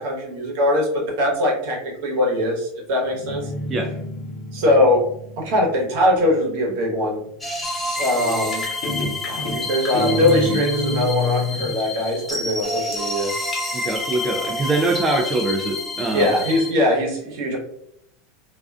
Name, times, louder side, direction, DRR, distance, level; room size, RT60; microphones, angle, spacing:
voice 1, 0.0-3.5 4.5-5.0 5.4-7.2 8.0-8.6 9.3-13.3 16.1-17.6, left 1 dB, 70° right, -2 dB, 1.0 m, -21 dB
Guitar, 3.1-6.7 8.2-8.6 8.8-11.8, left 1 dB, 55° left, 0.6 m, -27 dB
sound 1, 7.4-16.7, left 2 dB, 10° left, 0.7 m, -29 dB
sound 2, 8.0-10.7 12.3-12.5 12.9-14.4 15.3-15.9, left 2 dB, 30° left, 1.1 m, -40 dB
voice 2, 13.7-16.3, right 2 dB, 25° right, 1 dB, 0.4 m, -23 dB
2.4 x 2.2 x 2.3 m, 0.73 s
hypercardioid pair, 95°, 0 cm